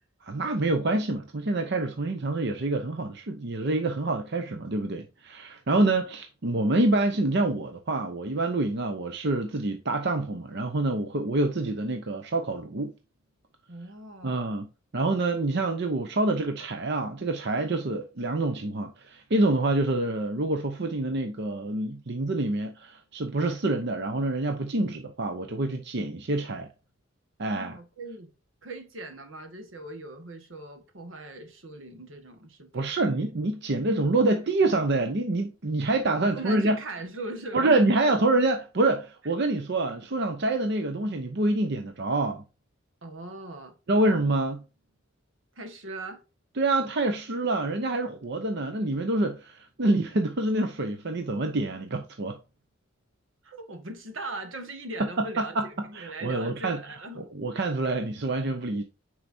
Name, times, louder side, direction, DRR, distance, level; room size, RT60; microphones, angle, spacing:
voice 1, 0.2-12.9 14.2-26.7 27.4-27.8 32.7-36.8 37.5-42.4 43.9-44.6 46.6-52.4 55.2-56.8 57.2-58.8, right 2 dB, 60° right, 0.8 m, -26 dB
voice 2, 13.7-14.5 27.5-28.3 28.6-33.3 36.2-38.1 40.4-40.5 43.0-43.7 45.5-46.2 53.4-57.3, right 2 dB, 85° right, 1.6 m, -40 dB
9.4 x 4.7 x 2.7 m
head